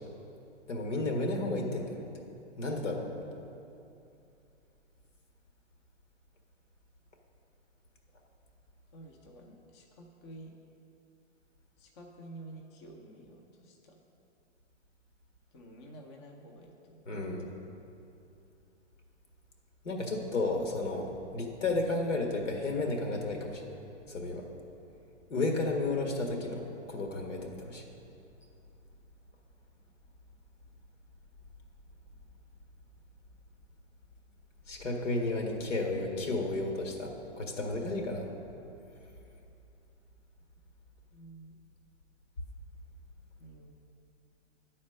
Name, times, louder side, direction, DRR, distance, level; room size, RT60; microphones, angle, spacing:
voice 1, 0.7-2.0 2.6-3.1 17.0-17.5 19.8-23.7 24.1-24.4 25.3-26.6 26.9-27.8 34.7-37.1 37.4-38.3, left 2 dB, 80° left, 2 dB, 1.6 m, -32 dB
voice 2, 8.9-10.5 11.8-14.0 15.5-17.5 41.1-41.5 43.4-43.7, right 1 dB, 25° left, 1 dB, 0.6 m, -50 dB
9.5 x 4.3 x 6.3 m, 2.7 s
hypercardioid pair, 140°, 36 cm